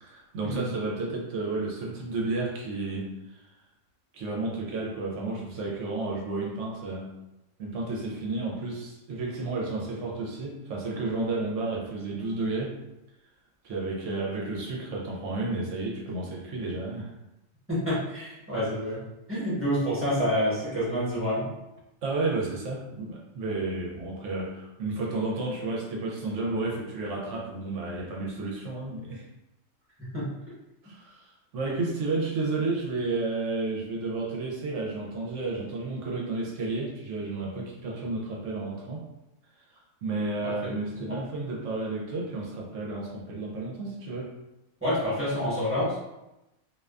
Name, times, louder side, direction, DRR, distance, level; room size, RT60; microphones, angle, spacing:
voice 1, 0.0-3.5 4.1-7.1 7.6-12.8 13.6-17.1 22.0-29.3 30.8-39.0 40.0-44.3, right 3 dB, 70° right, -2 dB, 0.9 m, -32 dB
voice 2, 17.7-19.0 19.3-21.5 30.1-30.3 40.4-40.7 41.0-41.2 44.8-46.0, equal, 10° right, -11 dB, 0.9 m, -28 dB
2.5 x 2.2 x 2.3 m, 0.94 s
omnidirectional pair, 1.4 m